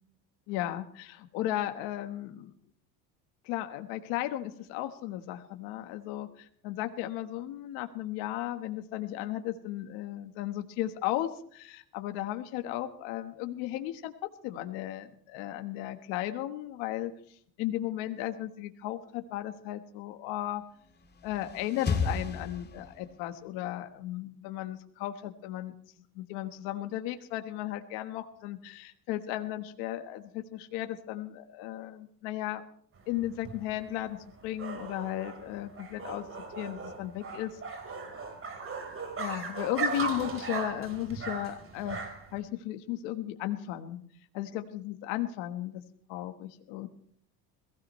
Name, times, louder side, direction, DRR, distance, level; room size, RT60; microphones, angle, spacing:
voice 1, 0.5-2.5 3.4-14.1 14.4-20.6 21.2-25.7 26.1-32.6 33.1-36.3 36.6-37.6 39.2-42.0 42.3-44.0 44.3-45.7 46.1-46.9, left 13 dB, 85° left, 7 dB, 1.5 m, -35 dB
sound 1, 20.9-23.3, left 5 dB, 25° left, 2.9 m, -33 dB
sound 2, 33.0-42.4, right 4 dB, 35° right, 4.4 m, -38 dB
22.0 x 16.0 x 3.2 m, 0.62 s
cardioid pair, 110°, 38 cm